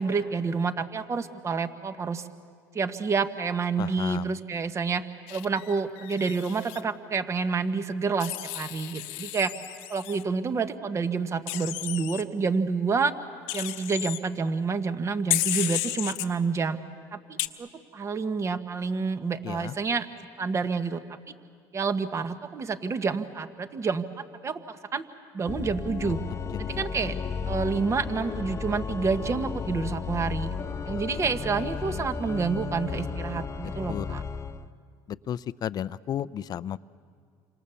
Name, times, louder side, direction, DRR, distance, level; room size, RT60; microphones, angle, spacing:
voice 1, 0.0-2.3 2.7-5.0 5.3-9.5 9.9-13.1 13.5-16.8 17.1-20.1 20.4-21.2 21.7-25.0 25.3-26.2 26.6-27.1 27.5-30.5 30.9-34.2, right 5 dB, 30° right, 10 dB, 1.4 m, -28 dB
voice 2, 3.8-4.4 19.4-19.8 26.5-27.3 30.9-31.0 31.8-32.0 33.9-34.2 35.1-36.8, left 10 dB, 45° left, 17 dB, 0.6 m, -34 dB
Wild animals, 5.3-6.8 8.2-10.2 11.5-12.2 13.5-14.2 15.3-16.3 17.4-17.5, left 17 dB, 80° left, 1.1 m, -32 dB
Organ, 25.4-34.7, left 5 dB, 30° left, 1.1 m, -34 dB
29.0 x 25.5 x 7.1 m, 2.1 s
supercardioid pair, 90°, 9 cm